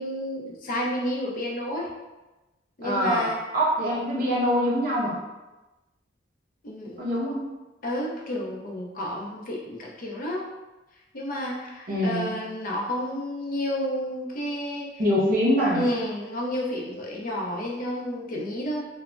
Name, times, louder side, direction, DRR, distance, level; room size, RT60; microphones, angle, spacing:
voice 1, 0.0-1.9 2.8-3.4 6.6-7.2 7.8-10.5 11.1-14.9 15.7-18.8, left 1 dB, 50° left, -2 dB, 0.5 m, -31 dB
voice 2, 2.8-3.3 3.5-5.2 7.0-7.4 11.9-12.4 15.0-15.9, equal, 50° right, -6 dB, 0.7 m, -24 dB
3.2 x 2.0 x 2.4 m, 1.1 s
head